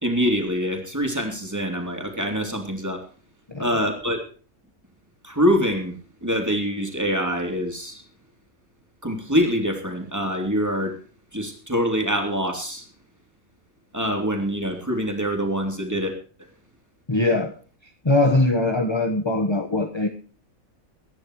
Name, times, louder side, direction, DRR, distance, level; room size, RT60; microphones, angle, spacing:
voice 1, 0.0-3.0 3.6-4.2 5.2-5.9 6.2-8.0 9.0-10.9 11.3-12.8 13.9-16.1, equal, 10° right, 4 dB, 3.1 m, -24 dB
voice 2, 17.1-17.5 18.0-20.1, left 2 dB, 20° left, 5 dB, 1.2 m, -21 dB
23.0 x 10.5 x 3.1 m, 0.37 s
omnidirectional pair, 1.5 m